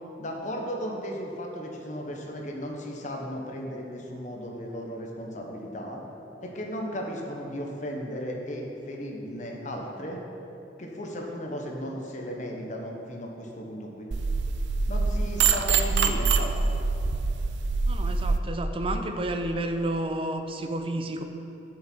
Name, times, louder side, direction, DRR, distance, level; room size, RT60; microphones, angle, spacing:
voice 1, 0.2-6.0 6.4-10.2 10.8-14.1 14.9-16.6, equal, 45° left, 0 dB, 1.1 m, -35 dB
sound 1, 14.1-18.4, right 4 dB, 80° right, 0.5 m, -25 dB
voice 2, 17.9-21.2, right 1 dB, 30° right, 6 dB, 0.6 m, -30 dB
8.4 x 7.2 x 4.6 m, 3.0 s
head